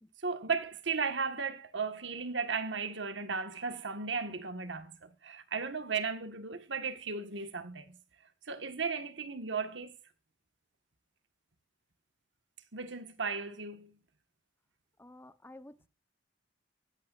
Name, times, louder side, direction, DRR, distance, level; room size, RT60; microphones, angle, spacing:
voice 1, 0.2-8.0 8.5-10.0 12.7-14.0, right 5 dB, 85° right, 1.7 m, -35 dB
voice 2, 15.0-15.9, left 1 dB, 10° left, 1.0 m, -52 dB
16.5 x 14.5 x 2.6 m
head